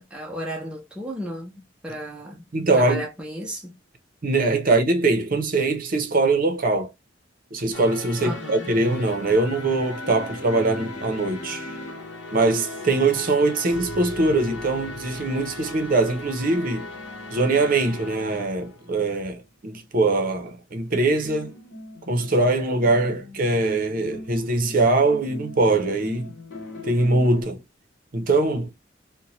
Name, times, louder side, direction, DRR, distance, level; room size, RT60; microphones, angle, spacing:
voice 1, 0.0-2.5 2.7-3.7 8.2-8.7, equal, 5° right, 0.4 m, -34 dB
voice 2, 2.5-3.0 4.2-6.9 7.5-11.7 12.3-16.9 17.3-21.5 22.1-26.3 26.8-27.6 28.1-28.7, right 2 dB, 45° right, 0.6 m, -22 dB
sound 1, 7.7-19.3 20.7-27.4, left 1 dB, 60° left, 0.9 m, -38 dB
2.9 x 2.1 x 2.7 m
head